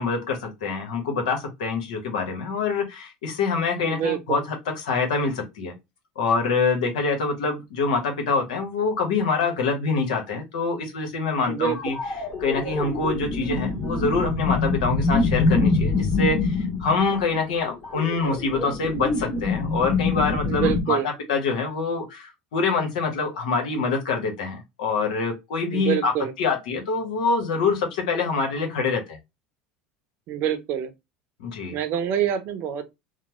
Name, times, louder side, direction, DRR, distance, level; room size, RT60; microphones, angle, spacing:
voice 1, 0.0-5.7 6.2-12.0 12.4-21.0 21.3-26.1 26.4-29.2 31.4-31.8, left 4 dB, 85° left, 1.0 m, -25 dB
voice 2, 3.8-4.4 11.5-11.8 20.4-21.1 25.7-26.3 30.3-30.9 31.7-32.8, right 9 dB, 55° right, 0.6 m, -26 dB
sound 1, 11.7-20.8, left 3 dB, 35° left, 1.6 m, -25 dB
3.1 x 2.0 x 2.8 m
hypercardioid pair, 90°, 4 cm